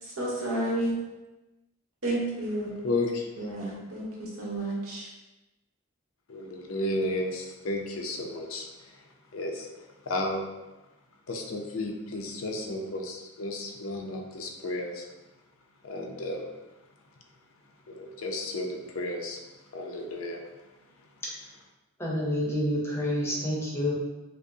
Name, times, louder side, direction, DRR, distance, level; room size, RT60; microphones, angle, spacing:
voice 1, 0.0-0.9 2.0-2.7 3.4-5.1, right 1 dB, 80° right, -4 dB, 1.1 m, -31 dB
voice 2, 2.8-3.3 6.3-9.0 9.3-10.4 11.3-15.1 15.8-16.5 17.9-19.4 19.7-20.4 21.0-21.1, left 2 dB, 70° left, 2 dB, 0.5 m, -33 dB
voice 3, 22.0-23.9, equal, 10° left, -4 dB, 0.7 m, -28 dB
5.1 x 2.0 x 2.6 m, 1.1 s
head